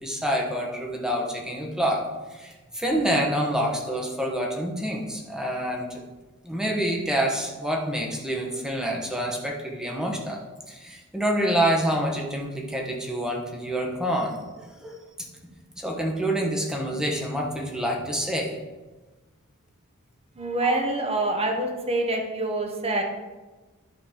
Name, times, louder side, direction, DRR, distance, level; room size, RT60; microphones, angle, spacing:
voice 1, 0.0-6.0 6.4-10.4 10.7-15.0 15.8-18.6 20.6-20.8, equal, 5° right, 0 dB, 1.3 m, -27 dB
voice 2, 20.3-23.0, right 2 dB, 25° right, 1 dB, 1.3 m, -26 dB
11.5 x 4.1 x 5.2 m, 1.2 s
head